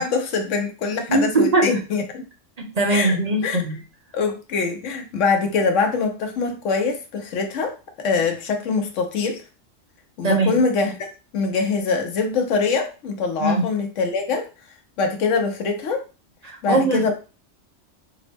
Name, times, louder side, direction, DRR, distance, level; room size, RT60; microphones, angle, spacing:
voice 1, 0.0-2.2 2.9-3.2 3.4-3.6 4.1-9.4 10.2-11.1 11.3-14.5 15.0-16.0 16.6-17.1, left 4 dB, 75° left, 5 dB, 1.1 m, -23 dB
voice 2, 1.1-1.6 2.6-3.8 10.2-10.5 13.4-13.6 16.5-17.1, right 2 dB, 35° right, 2 dB, 0.9 m, -20 dB
4.9 x 2.0 x 3.3 m, 0.33 s
omnidirectional pair, 1.3 m